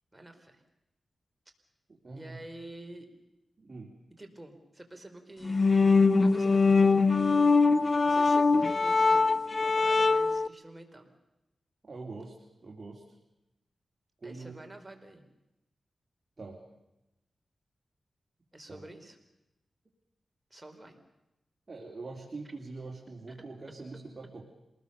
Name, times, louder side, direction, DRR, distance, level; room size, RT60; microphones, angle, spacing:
voice 1, 0.1-0.6 2.1-3.1 4.2-5.6 6.1-7.3 8.0-11.1 14.2-15.3 18.5-19.2 20.5-21.0 23.3-23.4, right 1 dB, 15° right, 5 dB, 4.5 m, -48 dB
voice 2, 1.9-2.4 3.6-3.9 11.8-13.2 14.2-14.6 16.4-16.6 18.7-18.9 21.7-24.4, right 3 dB, 40° right, -1 dB, 4.0 m, -44 dB
sound 1, 5.4-10.5, left 4 dB, 50° left, 0.8 m, -23 dB
27.5 x 20.5 x 7.0 m, 0.93 s
cardioid pair, 60°, 0 cm